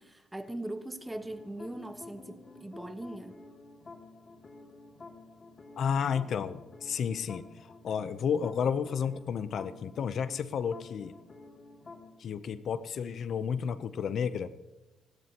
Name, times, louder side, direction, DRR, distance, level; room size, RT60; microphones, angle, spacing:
voice 1, 0.0-3.4, right 1 dB, 10° right, 1.3 m, -40 dB
sound 1, 1.0-12.1, left 3 dB, 35° left, 2.2 m, -51 dB
voice 2, 5.8-7.4 7.8-11.1 12.2-14.5, left 7 dB, 60° left, 0.7 m, -31 dB
27.5 x 12.5 x 2.9 m
cardioid pair, 90°, 0 cm